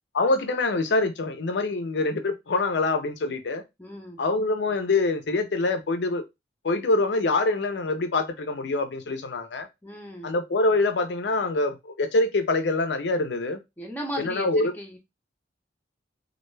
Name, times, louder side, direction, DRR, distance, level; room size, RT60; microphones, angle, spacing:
voice 1, 0.1-3.6 4.2-6.2 6.6-9.7 10.2-13.6 14.2-14.7, left 2 dB, 65° left, 0.5 m, -25 dB
voice 2, 3.8-4.2 9.8-10.3 13.8-15.0, equal, 10° left, 0.6 m, -36 dB
2.3 x 2.2 x 3.1 m
head